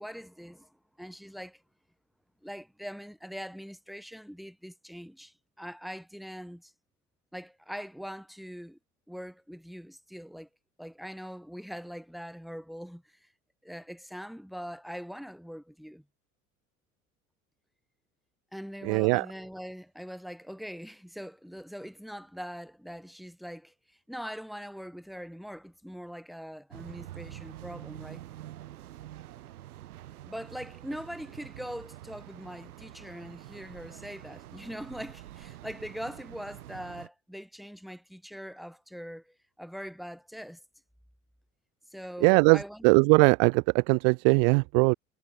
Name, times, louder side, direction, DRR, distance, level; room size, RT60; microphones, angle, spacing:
voice 1, 0.0-1.6 2.4-6.7 7.3-8.8 9.1-10.5 10.8-13.3 13.6-16.0 18.5-28.2 30.3-40.6 41.9-42.9, equal, ahead, 3.8 m, -42 dB
voice 2, 18.9-19.2 42.2-42.6 42.8-44.9, right 40 dB or more, 50° right, 0.5 m, -20 dB
sound 1, 26.7-37.1, right 14 dB, 75° right, 1.8 m, -46 dB
hypercardioid pair, 75°, 44 cm